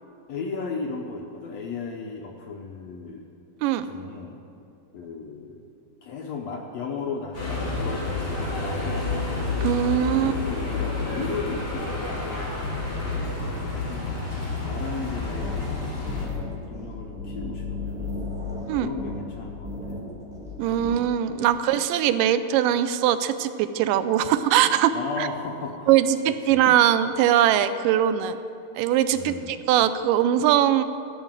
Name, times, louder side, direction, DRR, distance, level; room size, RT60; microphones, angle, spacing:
voice 1, 0.3-3.3 3.9-4.4 4.9-5.7 6.0-9.3 10.1-12.4 13.1-14.2 14.6-15.7 16.7-18.3 18.8-19.8 21.5-21.7 24.9-25.9 26.3-26.6 29.1-29.5, left 4 dB, 70° left, 1 dB, 1.6 m, -35 dB
sound 1, 7.3-16.3, left 3 dB, 35° left, 3.6 m, -29 dB
voice 2, 9.6-10.3 18.7-18.9 20.6-25.3 25.9-28.4 28.8-30.8, right 11 dB, 85° right, 12 dB, 2.2 m, -21 dB
sound 2, 15.0-21.0, left 3 dB, 5° right, 0.8 m, -34 dB
13.0 x 6.0 x 8.9 m, 2.6 s
omnidirectional pair, 3.8 m